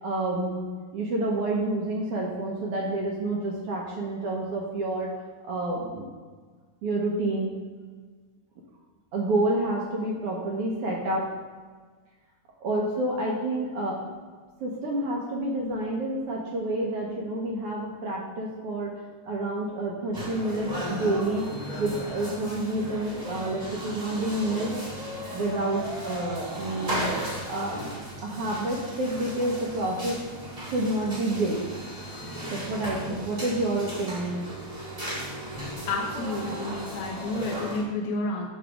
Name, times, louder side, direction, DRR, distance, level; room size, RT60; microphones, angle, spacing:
voice 1, 0.0-0.7 0.9-5.1 5.4-6.1 6.8-7.6 9.1-11.3 12.6-14.0 14.6-18.9 19.3-21.5 21.8-24.8 25.3-27.8 28.2-30.2 30.7-31.6 32.5-34.4, right 2 dB, 65° right, -2 dB, 1.6 m, -29 dB
sound 1, 20.1-37.8, equal, 20° right, 1.3 m, -36 dB
voice 2, 35.9-38.5, left 2 dB, 80° left, -1 dB, 2.0 m, -30 dB
8.5 x 3.3 x 6.0 m, 1.5 s
omnidirectional pair, 3.4 m